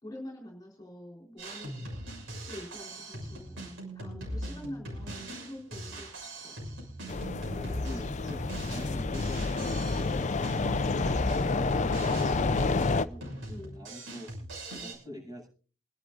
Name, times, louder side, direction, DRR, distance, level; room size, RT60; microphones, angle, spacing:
voice 1, 0.0-1.9 2.3-6.6 13.5-13.8, left 1 dB, 20° left, -1 dB, 3.9 m, -46 dB
Drum kit, 1.4-14.9, right 1 dB, 85° right, 6.5 m, -40 dB
sound 1, 7.1-13.1, left 3 dB, 40° left, 0.5 m, -29 dB
voice 2, 7.2-10.3 13.6-14.3 14.7-15.5, equal, 20° right, -1 dB, 8.0 m, -45 dB
27.0 x 11.0 x 2.6 m, 0.39 s
head